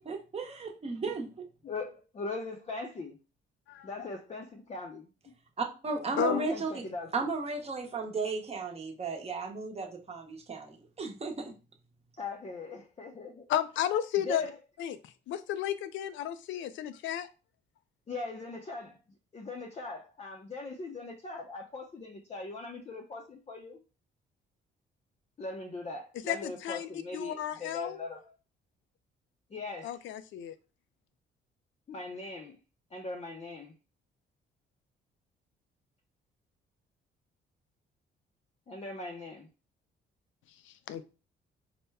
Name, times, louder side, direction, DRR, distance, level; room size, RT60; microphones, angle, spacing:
voice 1, 0.0-1.3 5.6-6.8 7.1-11.5, right 4 dB, 30° right, 2 dB, 0.9 m, -35 dB
voice 2, 1.6-3.2 3.8-5.3 6.1-7.1 12.2-13.5 14.2-14.5 18.1-19.0 19.3-23.8 25.4-28.3 29.5-30.0 31.9-32.6 32.9-33.7 38.7-39.5, left 3 dB, 30° left, 1 dB, 0.6 m, -40 dB
voice 3, 3.7-4.1 6.2-6.4 13.5-14.4 14.8-17.3 26.3-28.0 29.8-30.5 40.7-41.0, left 11 dB, 75° left, 12 dB, 0.4 m, -33 dB
4.2 x 2.2 x 3.4 m, 0.33 s
cardioid pair, 90°, 20 cm